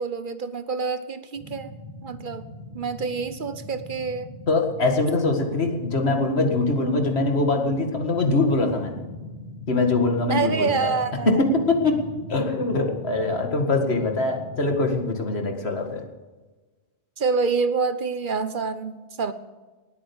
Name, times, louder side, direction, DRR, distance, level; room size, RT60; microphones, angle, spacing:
voice 1, 0.0-1.7 2.0-2.5 2.7-4.3 10.3-11.4 17.2-19.3, right 4 dB, 55° right, 12 dB, 1.0 m, -27 dB
sound 1, 1.4-15.0, left 1 dB, ahead, 3.8 m, -40 dB
voice 2, 4.5-9.0 9.7-10.9 11.3-12.0 12.3-16.0, left 2 dB, 75° left, 3 dB, 2.2 m, -23 dB
19.0 x 9.0 x 7.0 m, 1.3 s
omnidirectional pair, 1.1 m